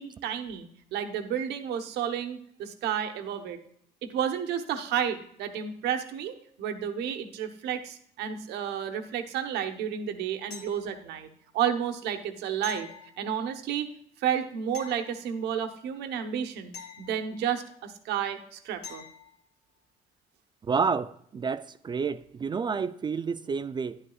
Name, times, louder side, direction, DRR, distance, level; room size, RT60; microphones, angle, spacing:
voice 1, 0.0-3.6 4.0-11.3 11.5-12.9 13.2-13.9 14.2-16.7 17.0-19.0, right 9 dB, 80° right, 7 dB, 1.1 m, -31 dB
sound 1, 10.5-11.3 12.6-13.7 14.7-15.8 16.7-17.8 18.8-19.4 22.2-22.3, left 6 dB, 75° left, 3.0 m, -46 dB
voice 2, 20.6-24.0, right 5 dB, 25° right, 13 dB, 0.4 m, -29 dB
11.0 x 9.9 x 2.4 m, 0.67 s
cardioid pair, 110°, 17 cm